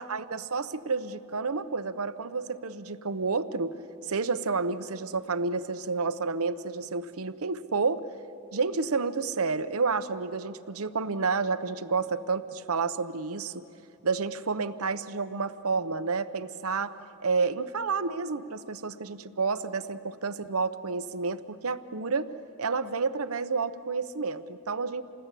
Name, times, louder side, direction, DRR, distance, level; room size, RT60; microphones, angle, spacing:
voice 1, 0.0-3.7 4.1-8.1 8.5-13.7 14.0-16.9 17.2-22.3 22.6-25.0, right 4 dB, 75° right, 12 dB, 0.9 m, -30 dB
28.5 x 20.0 x 8.4 m, 2.7 s
head